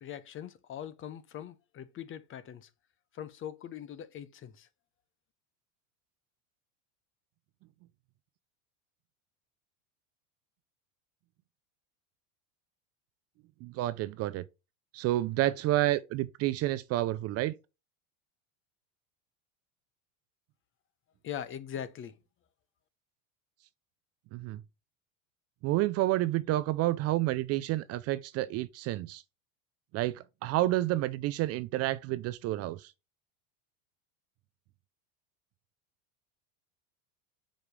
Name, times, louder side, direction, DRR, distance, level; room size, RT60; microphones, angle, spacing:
voice 1, 0.0-2.7 3.1-4.7 21.2-22.1, left 9 dB, 30° left, 0.8 m, -41 dB
voice 2, 13.6-14.4 14.9-17.6 24.3-24.6 25.6-29.2 29.9-32.9, right 16 dB, 40° right, 0.4 m, -29 dB
7.1 x 5.0 x 3.1 m
supercardioid pair, 120°, 40 cm